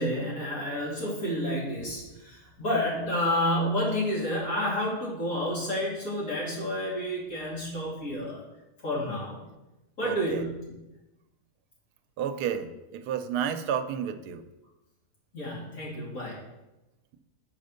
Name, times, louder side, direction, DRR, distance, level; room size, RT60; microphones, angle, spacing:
voice 1, 0.0-8.4 8.8-9.4 10.0-10.5 15.3-16.4, equal, 60° left, -6 dB, 3.2 m, -30 dB
voice 2, 10.0-10.5 12.2-14.5, right 8 dB, 85° right, 9 dB, 1.2 m, -31 dB
6.6 x 5.1 x 6.4 m, 1.0 s
omnidirectional pair, 1.7 m